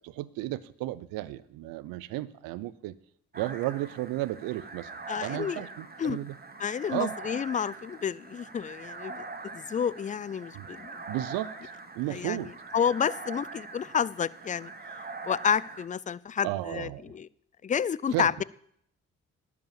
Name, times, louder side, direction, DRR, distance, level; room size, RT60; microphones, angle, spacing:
voice 1, 0.0-3.0 3.3-4.9 5.2-6.4 6.9-7.1 10.5-10.7 11.1-11.6 12.0-12.5 16.4-17.1 18.1-18.3, right 16 dB, 80° right, 19 dB, 0.6 m, -33 dB
sound 1, 3.3-15.8, right 3 dB, 30° right, 1.4 m, -43 dB
voice 2, 5.1-5.6 6.0-6.2 6.6-11.0 12.1-14.7 15.3-17.3 17.6-18.4, left 7 dB, 25° left, 21 dB, 0.4 m, -30 dB
11.0 x 5.2 x 7.6 m, 0.68 s
supercardioid pair, 55°, 34 cm